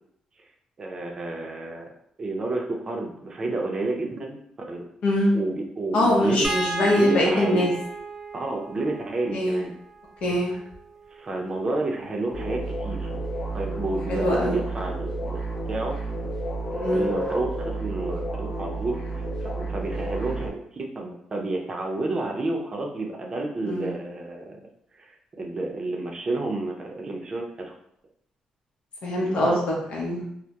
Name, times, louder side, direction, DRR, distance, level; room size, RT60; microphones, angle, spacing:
voice 1, 0.8-1.8 2.2-4.4 4.7-4.9 5.3-6.5 6.8-7.7 8.3-9.8 10.5-10.6 11.1-13.1 13.5-15.4 15.7-16.0 16.7-24.6 24.9-27.7 29.2-29.8, right 2 dB, 35° right, 1 dB, 0.5 m, -30 dB
voice 2, 5.0-5.3 5.9-7.7 9.3-9.6 10.2-10.5 14.1-14.6 16.8-17.1 23.6-23.9 29.0-30.3, left 1 dB, 70° left, -3 dB, 0.6 m, -23 dB
sound 1, 6.4-12.8 14.3-14.5 14.8-15.0, right 3 dB, 15° right, 0.9 m, -37 dB
sound 2, 12.3-20.5, right 2 dB, 40° left, 0.8 m, -31 dB
2.2 x 2.0 x 2.8 m, 0.72 s
cardioid pair, 90°, 2 cm